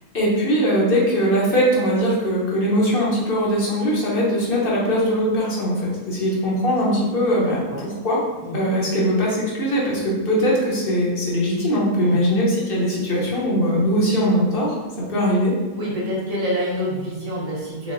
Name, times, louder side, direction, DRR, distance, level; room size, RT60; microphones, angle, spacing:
voice 1, 0.1-8.2 8.5-15.5, equal, 40° left, -5 dB, 0.9 m, -21 dB
voice 2, 7.4-7.9 8.4-8.7 12.0-12.3 15.7-17.9, equal, 35° right, -5 dB, 0.6 m, -27 dB
3.9 x 3.7 x 2.5 m, 1.2 s
omnidirectional pair, 1.8 m